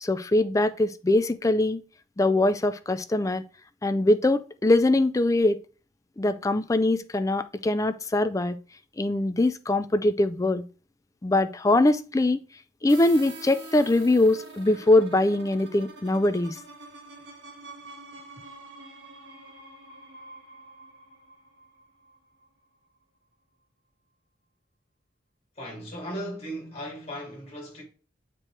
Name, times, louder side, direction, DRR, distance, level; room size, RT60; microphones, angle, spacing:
voice 1, 0.0-1.8 2.2-3.4 3.8-5.6 6.2-8.6 9.0-10.6 11.2-12.4 12.8-16.6, left 2 dB, 20° left, 0.4 m, -22 dB
sound 1, 12.9-22.5, right 2 dB, 70° right, 1.6 m, -45 dB
voice 2, 25.6-27.8, equal, 35° left, 2.6 m, -37 dB
7.5 x 4.6 x 3.2 m
head